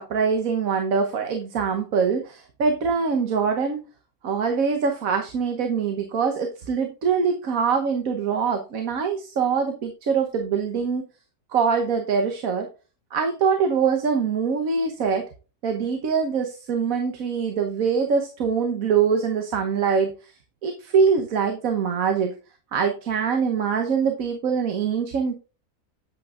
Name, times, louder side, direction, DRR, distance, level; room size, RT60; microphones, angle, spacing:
voice 1, 0.0-3.8 4.2-11.0 11.5-12.7 13.1-15.2 15.6-20.3 20.6-22.3 22.7-25.4, right 6 dB, 65° right, 5 dB, 1.5 m, -23 dB
8.6 x 8.4 x 2.5 m, 0.33 s
omnidirectional pair, 1.6 m